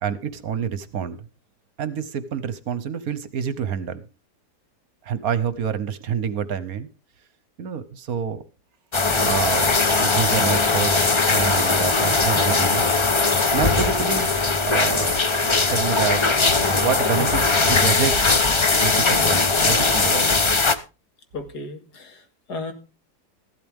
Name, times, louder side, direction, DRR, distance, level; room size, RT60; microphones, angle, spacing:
voice 1, 0.0-1.2 1.8-4.0 5.0-6.9 7.6-8.4 9.2-9.7 10.0-12.9 13.5-15.2 15.7-16.3 16.6-18.3 18.7-20.3, right 7 dB, 65° right, 14 dB, 1.3 m, -27 dB
sound 1, 8.9-20.8, left 3 dB, 35° left, 0.4 m, -20 dB
voice 2, 17.2-17.5 19.6-19.9 21.3-22.7, left 2 dB, 70° left, 6 dB, 2.5 m, -35 dB
14.5 x 12.0 x 3.5 m, 0.32 s
omnidirectional pair, 1.8 m